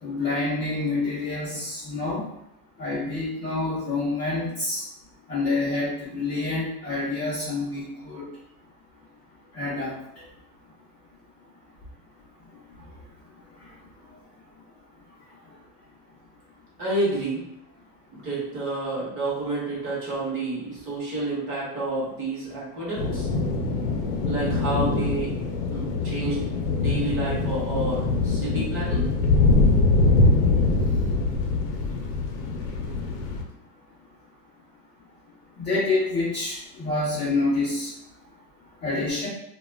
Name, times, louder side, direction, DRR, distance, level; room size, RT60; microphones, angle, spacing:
voice 1, 0.0-2.2 2.8-4.8 5.3-8.2 9.5-9.9 35.6-37.9 38.8-39.3, left 3 dB, 25° left, -11 dB, 0.5 m, -27 dB
voice 2, 16.8-17.4 18.1-23.3 24.2-25.3 25.7-26.4 26.7-29.1, right 2 dB, 25° right, -6 dB, 0.8 m, -29 dB
sound 1, 23.0-33.4, left 3 dB, 75° left, 0.6 m, -23 dB
2.3 x 2.2 x 3.2 m, 0.83 s
supercardioid pair, 165°, 48 cm